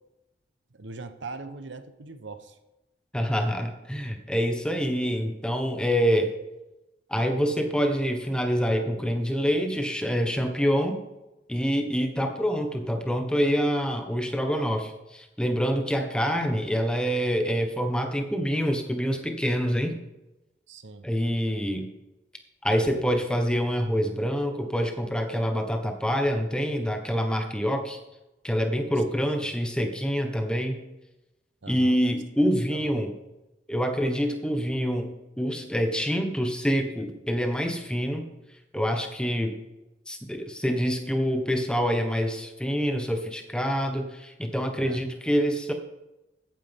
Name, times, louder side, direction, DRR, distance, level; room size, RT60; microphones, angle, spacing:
voice 1, 0.7-2.6 20.7-21.1 29.4-29.5 31.6-32.0 32.7-33.0 44.8-45.0, right 3 dB, 75° right, 10 dB, 0.9 m, -41 dB
voice 2, 3.1-6.3 7.1-11.0 11.5-19.9 21.0-21.9 22.6-28.0 28.4-30.8 31.7-33.1 33.7-38.3 38.7-39.6 40.1-45.7, equal, 5° left, 5 dB, 1.1 m, -26 dB
14.0 x 9.2 x 3.6 m, 0.96 s
head